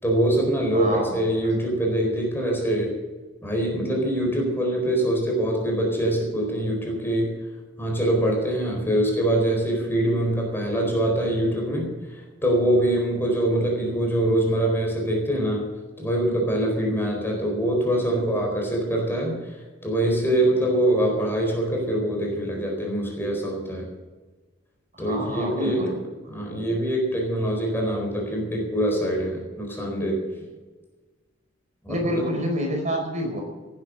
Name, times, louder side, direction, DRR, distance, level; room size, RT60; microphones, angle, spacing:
voice 1, 0.0-2.9 3.4-7.3 7.8-15.7 16.0-19.5 19.8-23.9 25.0-25.8 26.3-30.2 31.8-32.1, right 1 dB, 10° left, 0 dB, 4.2 m, -24 dB
voice 2, 0.7-1.2 24.9-25.9 31.9-33.4, equal, 40° right, 2 dB, 4.7 m, -27 dB
18.5 x 9.5 x 6.4 m, 1.3 s
head